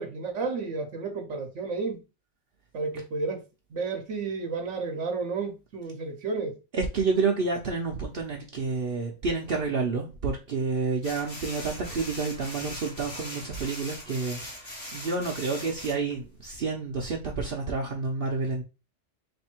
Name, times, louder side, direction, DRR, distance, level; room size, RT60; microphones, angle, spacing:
voice 1, 0.0-2.0 2.7-3.4 3.7-6.6, right 4 dB, 80° right, 1.1 m, -32 dB
voice 2, 6.7-18.6, right 4 dB, 55° right, 0.9 m, -29 dB
sound 1, 11.0-16.6, left 1 dB, 80° left, 1.9 m, -41 dB
3.4 x 2.6 x 4.4 m
omnidirectional pair, 1.2 m